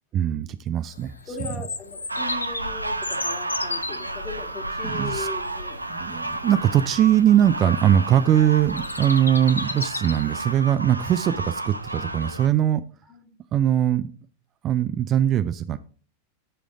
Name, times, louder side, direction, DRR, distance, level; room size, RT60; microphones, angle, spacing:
voice 1, 0.1-1.2 4.8-5.3 5.9-12.8 13.5-14.1 14.6-15.8, right 10 dB, 30° right, 13 dB, 0.4 m, -21 dB
Bird vocalization bird call bird song, 0.9-10.6, left 3 dB, 80° left, 0.7 m, -36 dB
voice 2, 1.2-5.8 10.8-10.9 13.1-13.6, left 3 dB, 25° left, 4 dB, 1.8 m, -38 dB
sound 1, 2.1-12.5, right 2 dB, 85° right, 0.6 m, -31 dB
11.0 x 5.0 x 3.6 m, 0.42 s
figure-of-eight pair, 90°, 0 cm